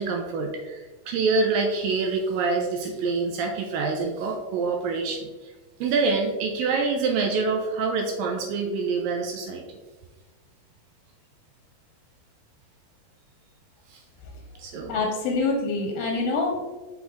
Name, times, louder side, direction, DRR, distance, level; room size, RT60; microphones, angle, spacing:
voice 1, 0.0-5.5 5.8-9.6 13.9-14.0 14.6-14.9, right 4 dB, 80° right, 2 dB, 2.1 m, -26 dB
voice 2, 14.9-16.8, left 3 dB, 80° left, 0 dB, 2.5 m, -26 dB
6.1 x 5.0 x 3.4 m, 1.3 s
omnidirectional pair, 4.5 m